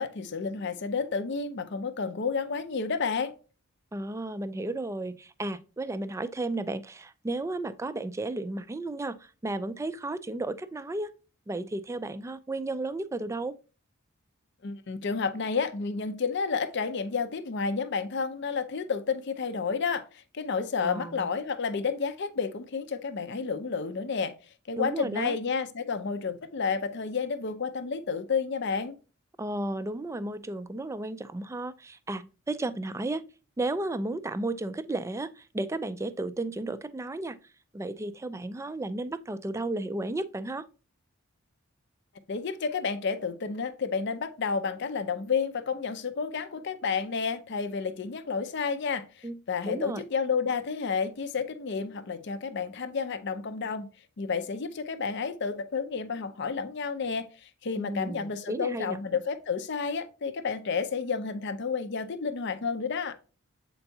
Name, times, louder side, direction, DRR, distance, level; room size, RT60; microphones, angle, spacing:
voice 1, 0.0-3.3 14.6-24.3 24.7-28.9 42.3-53.9 54.2-63.1, left 5 dB, 55° left, 0.5 m, -31 dB
voice 2, 3.9-11.1 11.5-13.6 20.8-21.3 24.8-25.4 29.4-33.2 33.6-37.4 37.7-40.6 49.2-49.4 49.7-50.0 57.8-59.0, right 2 dB, 15° right, 0.3 m, -33 dB
7.8 x 4.5 x 2.7 m
head